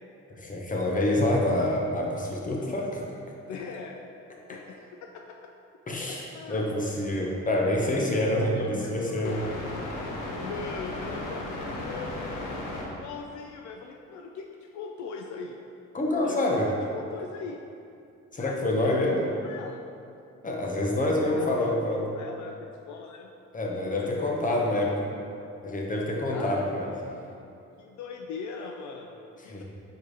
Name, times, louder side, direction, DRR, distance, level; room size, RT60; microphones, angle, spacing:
voice 1, 0.4-3.0 5.9-9.4 15.9-16.7 18.3-19.2 20.4-22.1 23.5-24.9 25.6-26.9 29.5-29.6, left 1 dB, 25° left, -1 dB, 1.1 m, -27 dB
voice 2, 3.5-4.0 4.5-5.4 6.3-6.6 8.4-9.4 10.4-11.5 11.8-12.1 12.9-15.6 16.2-17.6 18.4-19.0 19.4-19.8 21.0-23.3 23.7-24.8 26.3-26.7 27.8-29.6, left 5 dB, 70° left, 2 dB, 0.5 m, -40 dB
sound 1, 9.2-12.9, left 2 dB, 90° left, 1.0 m, -35 dB
4.7 x 4.6 x 4.8 m, 2.6 s
cardioid pair, 90°, 30 cm